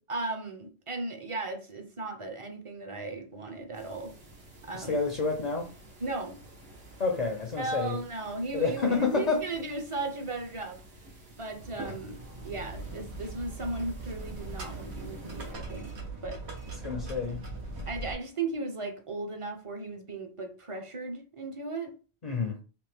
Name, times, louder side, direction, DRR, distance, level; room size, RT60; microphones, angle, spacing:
voice 1, 0.1-4.1 4.6-5.0 6.0-6.3 7.6-10.8 11.4-12.2 12.4-15.9 16.2-16.4 17.9-21.9, right 3 dB, 35° right, 0.7 m, -36 dB
sound 1, 3.7-15.5, right 1 dB, 65° right, 1.6 m, -53 dB
voice 2, 4.7-5.7 7.0-8.0 8.5-9.4 16.8-17.4 22.2-22.6, left 4 dB, 45° left, 0.6 m, -29 dB
sound 2, 11.6-18.1, right 2 dB, 85° right, 1.4 m, -40 dB
3.4 x 3.1 x 3.4 m
omnidirectional pair, 1.1 m